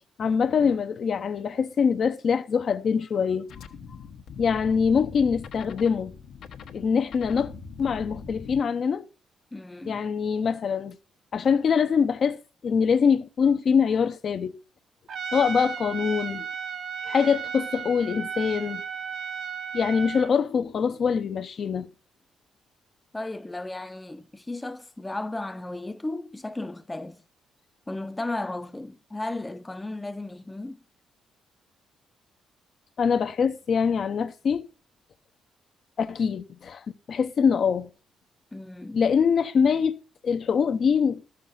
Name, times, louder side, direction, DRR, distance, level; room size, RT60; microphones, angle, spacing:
voice 1, 0.2-3.5 4.4-6.1 6.7-7.5 7.8-9.1 9.9-11.0 11.3-12.4 12.6-14.5 15.3-16.5 17.1-18.8 19.7-21.9 33.0-34.6 36.0-37.9 38.9-39.9 40.2-41.2, left 6 dB, 55° left, 0.7 m, -24 dB
sound 1, 3.5-8.6, left 6 dB, 75° left, 1.1 m, -42 dB
voice 2, 9.5-10.0 23.1-27.2 27.9-30.8 38.5-39.0, left 2 dB, 15° left, 0.6 m, -35 dB
Trumpet, 15.1-20.3, right 6 dB, 60° right, 1.0 m, -34 dB
13.0 x 6.5 x 5.5 m
cardioid pair, 90°, 0 cm